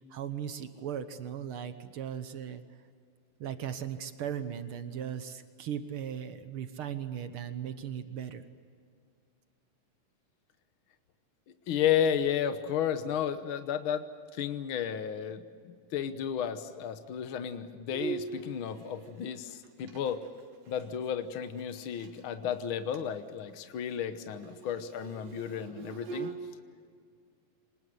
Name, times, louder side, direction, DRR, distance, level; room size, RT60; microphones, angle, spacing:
voice 1, 0.1-2.6 3.4-8.4, right 9 dB, 65° right, 10 dB, 1.4 m, -37 dB
voice 2, 11.7-14.0 14.3-20.2 20.7-26.3, left 9 dB, 75° left, 10 dB, 1.2 m, -33 dB
Bowed string instrument, 17.9-22.2 22.5-22.6 22.9-23.2 23.5-26.4, right 6 dB, 90° right, 3.9 m, -43 dB
25.5 x 20.0 x 8.0 m, 2.1 s
omnidirectional pair, 3.8 m